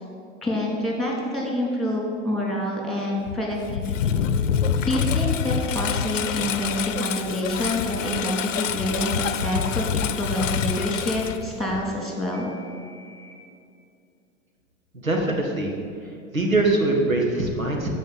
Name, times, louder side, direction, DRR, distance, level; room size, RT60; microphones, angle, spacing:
voice 1, 0.4-4.2 4.8-12.5, left 1 dB, ahead, -2 dB, 3.1 m, -27 dB
Engine, 3.3-12.0, left 8 dB, 70° left, 0.7 m, -26 dB
Telephone, 4.3-4.8 7.8-8.3 9.2-9.5 10.8-11.1 12.3-13.3, right 4 dB, 40° right, 3.5 m, -42 dB
voice 2, 14.9-15.8 16.3-17.9, right 2 dB, 90° right, 1 dB, 1.8 m, -22 dB
14.0 x 5.3 x 8.0 m, 2.4 s
figure-of-eight pair, 90°, 40 cm